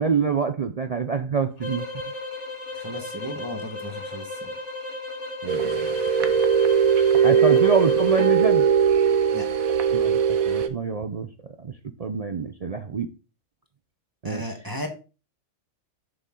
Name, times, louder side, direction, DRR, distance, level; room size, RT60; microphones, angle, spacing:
voice 1, 0.0-1.9 5.4-5.9 7.2-8.7 9.9-10.2 10.5-11.3 11.6-11.7 12.0-13.1 14.2-14.4, right 5 dB, 55° right, 0.4 m, -26 dB
sound 1, 1.6-8.4, left 2 dB, 60° left, 2.4 m, -35 dB
voice 2, 2.7-4.5 9.3-9.5 14.2-14.9, left 1 dB, 15° right, 1.3 m, -35 dB
sound 2, 5.5-10.7, right 7 dB, 90° right, 1.3 m, -20 dB
7.4 x 6.9 x 3.8 m
omnidirectional pair, 1.4 m